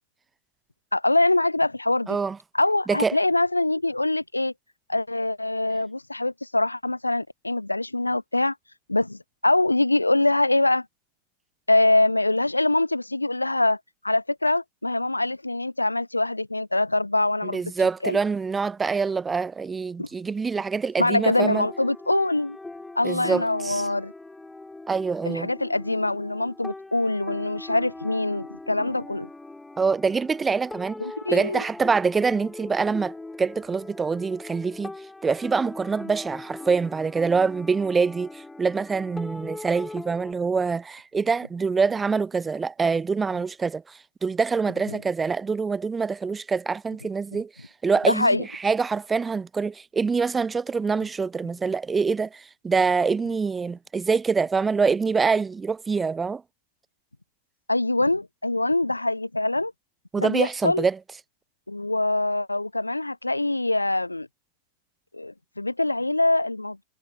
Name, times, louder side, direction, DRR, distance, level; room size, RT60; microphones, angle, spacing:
voice 1, 0.9-2.2 2.5-4.5 4.9-8.5 8.9-10.8 11.7-13.8 14.0-17.6 18.0-18.2 20.0-20.1 21.0-22.6 23.0-24.1 25.3-29.3 31.0-31.6 44.9-45.0 48.1-48.4 57.7-59.7 60.2-60.9 61.7-64.3 65.1-66.8, left 2 dB, 85° left, 0.7 m, -24 dB
voice 2, 17.4-21.7 23.0-23.8 24.9-25.5 29.8-31.0 31.3-33.1 33.4-34.9 35.2-47.5 47.8-56.4 60.1-61.0, right 5 dB, 15° right, 0.6 m, -25 dB
sound 1, 21.3-40.3, left 2 dB, 5° left, 2.7 m, -41 dB
figure-of-eight pair, 90°, 0 cm